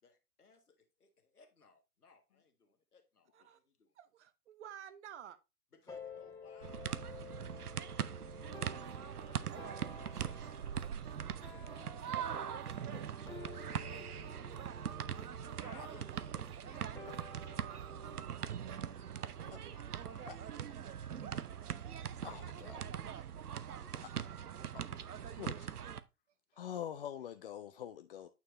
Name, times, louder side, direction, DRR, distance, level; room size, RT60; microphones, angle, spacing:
voice 1, 0.0-3.9 5.7-6.8 7.2-9.5 10.2-11.7 12.1-12.8 13.1-15.3 15.6-18.0 18.4-21.6 21.9-23.5 23.8-24.3 24.8-26.0, left 4 dB, 80° left, 1.7 m, -65 dB
voice 2, 4.0-5.4 11.0-11.2 11.6-12.1 14.6-14.9 17.6-17.9 19.5-19.9 21.5-22.3 23.6-24.3 25.3-25.7, right 10 dB, 50° right, 0.9 m, -55 dB
sound 1, 5.9-20.6, left 3 dB, 5° left, 1.2 m, -53 dB
sound 2, 6.6-26.0, right 9 dB, 80° right, 0.6 m, -42 dB
sound 3, 8.5-20.7, right 7 dB, 20° right, 0.5 m, -58 dB
voice 3, 22.2-22.8 23.1-23.2 25.4-25.7 26.6-28.3, left 9 dB, 40° left, 0.4 m, -45 dB
8.9 x 4.6 x 3.1 m
figure-of-eight pair, 115°, 45 cm